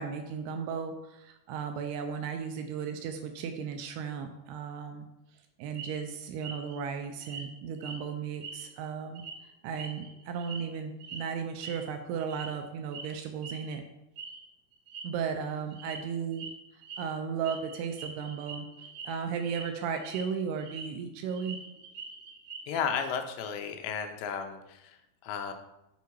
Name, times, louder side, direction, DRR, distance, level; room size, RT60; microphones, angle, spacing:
voice 1, 0.0-5.1 5.6-9.2 9.6-13.8 15.0-16.5 16.7-18.7 19.0-21.6, right 6 dB, 80° right, 6 dB, 2.4 m, -35 dB
sound 1, 5.8-6.0 6.4-6.7 7.2-7.5 7.8-8.0 8.4-8.9 9.2-9.4 9.8-10.7 11.0-11.2 11.6-11.8 12.3-12.6 12.9-13.1 13.4-13.7 14.2-14.4 14.7-15.1 15.7-16.0 16.3-16.5 16.8-17.0 17.4-19.1 19.4-19.6 20.0-20.9 21.2-22.8, right 4 dB, 60° right, 2.7 m, -43 dB
voice 2, 22.7-25.5, left 7 dB, 80° left, 6 dB, 2.9 m, -34 dB
7.0 x 4.5 x 4.6 m, 0.90 s
omnidirectional pair, 5.0 m